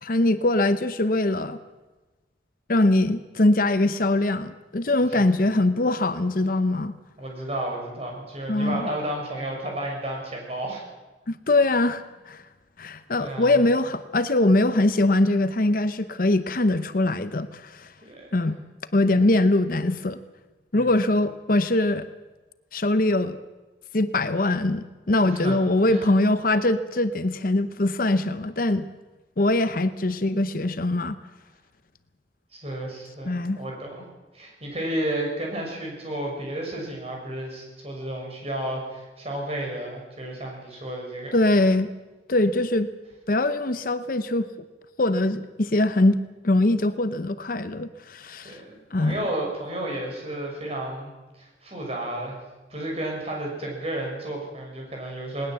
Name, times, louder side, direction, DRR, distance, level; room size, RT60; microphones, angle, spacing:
voice 1, 0.0-1.6 2.7-6.9 8.5-8.9 11.3-12.4 12.8-17.9 18.3-18.6 18.9-20.2 20.7-22.0 22.7-23.4 23.9-28.9 29.4-31.2 33.2-33.6 41.3-41.9 42.3-42.9 43.3-44.5 45.0-46.2 46.4-48.6 48.9-49.2, left 2 dB, 50° left, 11 dB, 0.8 m, -22 dB
voice 2, 7.2-10.8 13.2-13.6 18.0-18.5 20.7-20.9 25.2-25.6 25.9-26.1 32.5-34.1 34.3-41.4 48.4-51.1 51.4-52.4 52.7-55.5, right 1 dB, 35° right, 0 dB, 6.5 m, -32 dB
20.0 x 19.5 x 7.6 m, 1.2 s
head